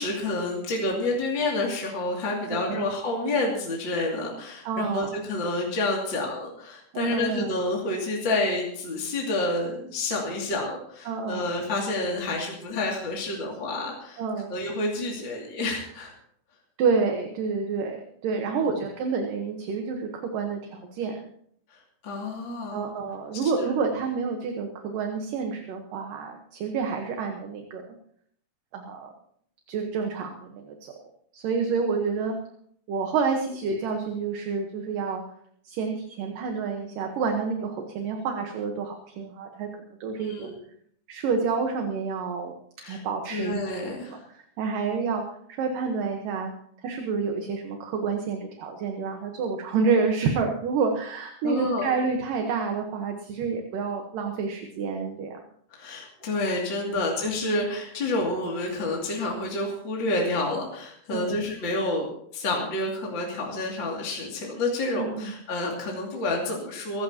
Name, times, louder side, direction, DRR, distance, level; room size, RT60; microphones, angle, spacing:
voice 1, 0.0-14.2 14.5-16.1 21.7-22.8 23.4-23.7 40.2-40.6 42.8-43.0 43.3-44.2 51.4-51.9 55.7-67.0, left 2 dB, 35° left, -2 dB, 2.9 m, -29 dB
voice 2, 2.5-2.9 4.6-5.1 6.9-7.5 11.1-11.5 14.2-14.5 16.8-18.0 18.2-21.2 22.7-27.8 28.7-29.1 29.7-30.9 31.3-32.4 32.9-35.2 35.6-39.7 40.0-40.5 41.1-42.5 42.9-43.6 44.1-45.2 45.5-46.5 46.8-55.4 56.9-57.1 61.1-61.5 65.0-65.3, right 5 dB, 65° right, 3 dB, 2.7 m, -28 dB
24.0 x 14.0 x 2.9 m, 0.65 s
omnidirectional pair, 4.4 m